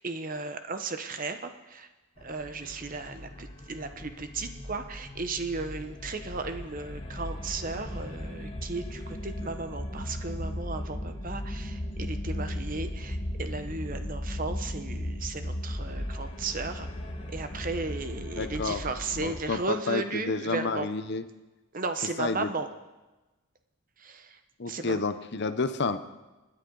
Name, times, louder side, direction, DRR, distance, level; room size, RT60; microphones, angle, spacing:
voice 1, 0.0-1.9 2.2-16.9 17.3-20.9 21.7-22.7 24.0-24.4 24.7-25.0, right 3 dB, 40° right, 8 dB, 0.9 m, -35 dB
sound 1, 2.2-19.4, left 1 dB, 25° left, 1.1 m, -37 dB
voice 2, 18.4-18.8 19.2-19.6 19.9-21.2 22.2-22.5 24.6-26.0, left 4 dB, 50° left, 11 dB, 0.7 m, -30 dB
25.5 x 9.9 x 3.9 m, 1.1 s
head